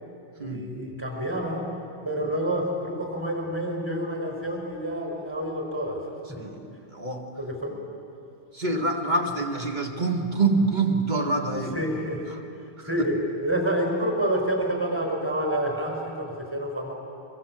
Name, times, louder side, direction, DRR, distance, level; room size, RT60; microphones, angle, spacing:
voice 1, 0.3-1.7 2.0-6.4 7.4-7.8 11.7-12.3 12.8-16.9, right 1 dB, 10° right, 0 dB, 4.9 m, -28 dB
voice 2, 6.4-7.3 8.5-11.7 12.3-12.4 12.8-12.9, right 3 dB, 45° right, 2 dB, 2.2 m, -26 dB
24.0 x 23.5 x 7.7 m, 2.7 s
omnidirectional pair, 1.1 m